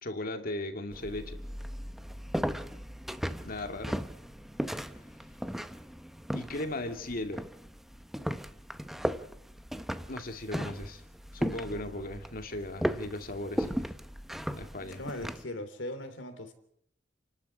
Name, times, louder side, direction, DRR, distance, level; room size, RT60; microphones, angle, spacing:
voice 1, 0.0-1.4 3.4-4.0 6.3-7.4 10.1-11.0 11.3-13.9 14.5-15.0, left 1 dB, 50° left, 6 dB, 2.4 m, -37 dB
sound 1, 0.9-15.4, equal, ahead, 0.8 m, -37 dB
voice 2, 15.0-16.5, left 1 dB, 80° left, 9 dB, 3.2 m, -39 dB
29.0 x 12.0 x 8.6 m, 0.70 s
head